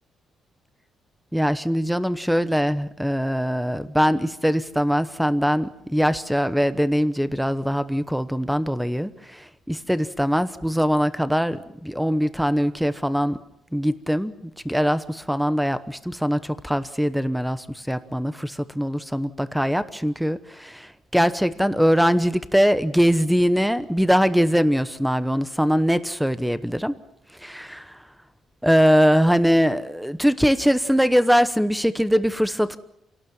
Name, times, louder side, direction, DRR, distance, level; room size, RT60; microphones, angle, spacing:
voice 1, 1.3-13.4 13.7-14.4 14.6-26.9 27.4-27.9 28.6-32.8, equal, ahead, 13 dB, 0.9 m, -22 dB
28.0 x 18.5 x 7.2 m, 0.81 s
cardioid pair, 170°, 0 cm